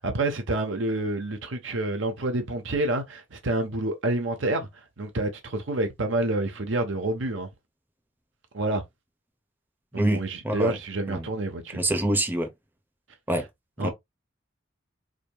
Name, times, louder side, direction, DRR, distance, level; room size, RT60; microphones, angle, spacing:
voice 1, 0.0-7.5 8.5-8.8 9.9-11.8 13.8-13.9, right 2 dB, 75° right, 0.9 m, -28 dB
voice 2, 11.7-12.5 13.3-13.4 13.8-13.9, right 1 dB, 10° right, 0.7 m, -25 dB
5.0 x 2.8 x 2.2 m
head